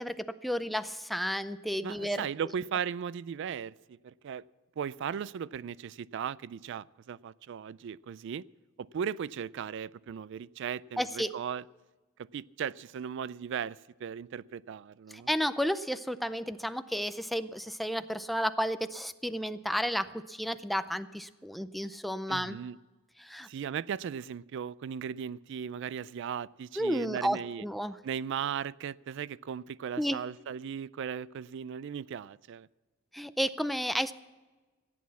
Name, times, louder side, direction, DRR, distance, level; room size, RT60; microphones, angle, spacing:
voice 1, 0.0-2.3 11.0-11.3 15.1-22.6 23.2-23.5 26.8-28.0 30.0-30.2 33.1-34.1, equal, ahead, 0.4 m, -32 dB
voice 2, 1.8-4.4 4.8-8.5 8.8-11.6 12.3-15.3 22.3-22.8 23.4-27.6 28.0-32.7, right 7 dB, 65° right, 0.3 m, -37 dB
15.5 x 8.5 x 7.0 m
head